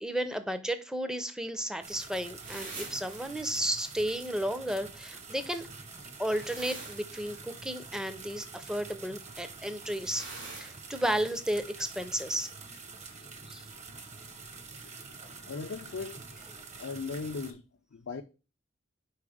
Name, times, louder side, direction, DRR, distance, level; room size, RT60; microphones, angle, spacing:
voice 1, 0.0-5.7 6.2-10.3 10.6-12.5 13.5-13.6, right 1 dB, 5° right, 0.5 m, -33 dB
sound 1, 1.8-17.5, right 4 dB, 35° right, 0.9 m, -47 dB
sound 2, 2.4-3.3 6.2-7.5 10.0-10.9, right 3 dB, 65° right, 2.8 m, -44 dB
voice 2, 15.5-16.2 16.8-17.6 17.9-18.2, left 4 dB, 80° left, 0.5 m, -37 dB
4.7 x 4.6 x 4.9 m
head